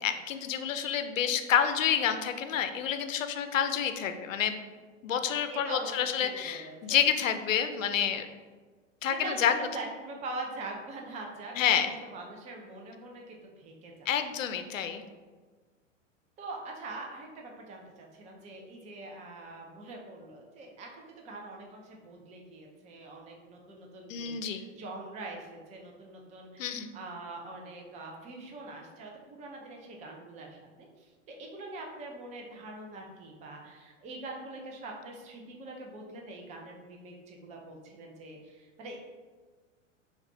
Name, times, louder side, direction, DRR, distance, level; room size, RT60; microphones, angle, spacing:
voice 1, 0.0-4.6 5.0-8.3 9.0-9.5 11.6-11.9 14.1-15.0 24.1-24.6 26.6-26.9, left 8 dB, 80° left, 8 dB, 0.5 m, -28 dB
voice 2, 3.7-4.1 5.5-7.0 9.2-11.8 12.1-14.1 16.4-39.0, right 2 dB, 20° right, 0 dB, 0.5 m, -43 dB
3.5 x 2.5 x 4.1 m, 1.4 s
hypercardioid pair, 105°, 39 cm